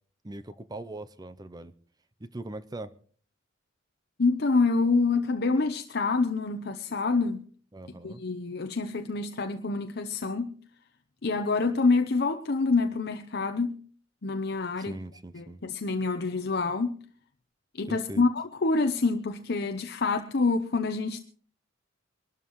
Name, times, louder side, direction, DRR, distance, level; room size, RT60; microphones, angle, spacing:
voice 1, 0.2-1.7 2.2-2.9 7.7-8.2 14.8-15.6 17.9-18.3, right 2 dB, 20° right, 0.6 m, -40 dB
voice 2, 4.2-7.4 8.0-10.6 11.2-13.8 14.2-14.9 15.3-17.0 17.8-21.2, left 3 dB, 55° left, 0.7 m, -27 dB
24.0 x 12.5 x 3.1 m
head